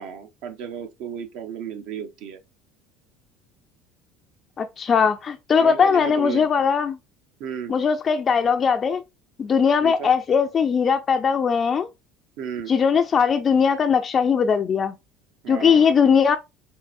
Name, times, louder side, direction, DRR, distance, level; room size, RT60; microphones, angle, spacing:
voice 1, 0.0-2.4 5.6-6.5 7.4-7.7 9.8-10.1 12.4-12.7 15.4-16.0, right 8 dB, 70° right, 0.7 m, -33 dB
voice 2, 4.6-7.0 7.7-9.0 9.4-11.9 12.7-14.9 15.5-16.4, left 6 dB, 30° left, 0.3 m, -19 dB
4.6 x 3.2 x 2.5 m
cardioid pair, 135°, 0 cm